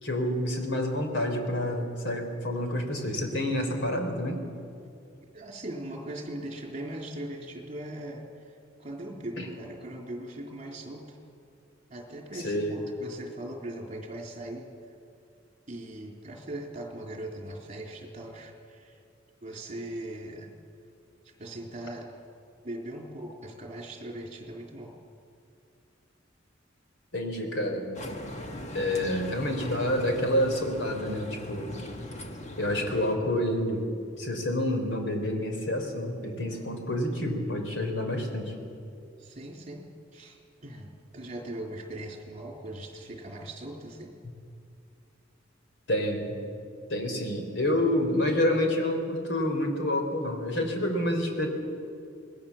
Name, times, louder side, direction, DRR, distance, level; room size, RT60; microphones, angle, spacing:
voice 1, 0.0-4.4 9.4-9.5 12.3-12.8 27.1-27.9 28.7-31.7 32.6-33.9 34.2-38.5 45.9-46.4 46.9-51.5, left 1 dB, 70° left, 4 dB, 4.0 m, -28 dB
voice 2, 5.3-8.3 8.8-11.2 11.9-14.7 15.7-19.0 19.4-20.5 21.3-22.1 22.6-24.9 36.5-36.6 39.2-39.8 40.1-44.1, right 1 dB, 40° right, 1 dB, 3.8 m, -40 dB
sound 1, 28.0-33.2, left 1 dB, 40° left, 1.7 m, -40 dB
27.0 x 20.0 x 7.4 m, 2.4 s
head